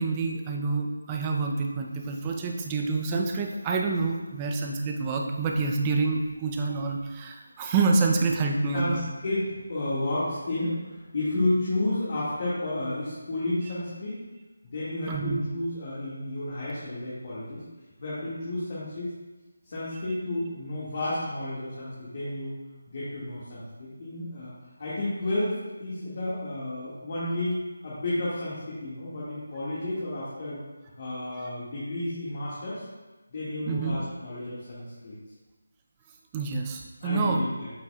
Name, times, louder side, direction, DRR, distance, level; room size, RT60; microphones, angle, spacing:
voice 1, 0.0-9.0 15.1-15.4 33.7-34.0 36.3-37.4, right 3 dB, 20° right, 1 dB, 0.6 m, -27 dB
voice 2, 8.7-14.2 14.6-17.6 18.0-19.1 19.7-22.5 22.9-24.5 24.8-30.6 31.0-32.8 33.3-35.2 37.0-37.7, left 1 dB, 45° left, -9 dB, 2.0 m, -31 dB
8.4 x 6.7 x 2.4 m, 1.2 s
figure-of-eight pair, 160°, 0 cm